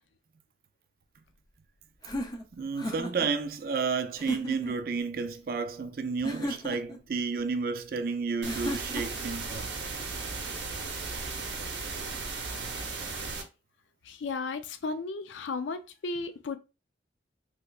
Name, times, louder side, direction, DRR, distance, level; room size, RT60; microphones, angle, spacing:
sound 1, 2.0-3.3 4.2-4.8 6.2-7.0 8.5-9.3, left 1 dB, 20° left, 0.4 m, -35 dB
voice 1, 2.5-9.7, right 5 dB, 50° right, 0.3 m, -31 dB
sound 2, 8.4-13.4, right 4 dB, 80° right, 0.8 m, -36 dB
voice 2, 14.1-16.6, left 3 dB, 85° left, 0.4 m, -34 dB
3.3 x 2.9 x 2.3 m
head